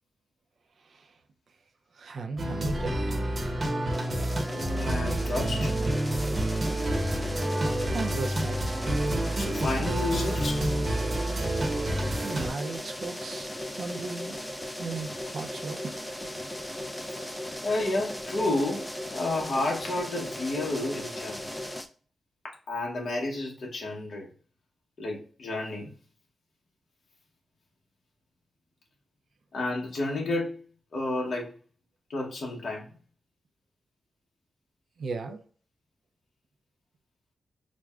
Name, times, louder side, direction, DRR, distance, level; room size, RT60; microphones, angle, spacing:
voice 1, 2.0-3.0 7.9-8.8 12.2-13.5 13.8-14.4 14.8-16.0 16.2-16.5 35.0-35.4, right 4 dB, 65° right, 0.5 m, -36 dB
sound 1, 2.4-12.5, right 1 dB, 35° right, 0.8 m, -28 dB
sound 2, 3.9-21.9, left 1 dB, 10° left, 0.5 m, -38 dB
voice 2, 4.5-5.8 8.1-8.2 9.4-10.6 17.6-21.5 22.4-24.3 25.0-25.9 29.5-30.6 30.9-31.5 32.1-32.9, left 2 dB, 65° left, 0.9 m, -31 dB
6.1 x 2.2 x 2.3 m
wide cardioid pair, 135°, 0 cm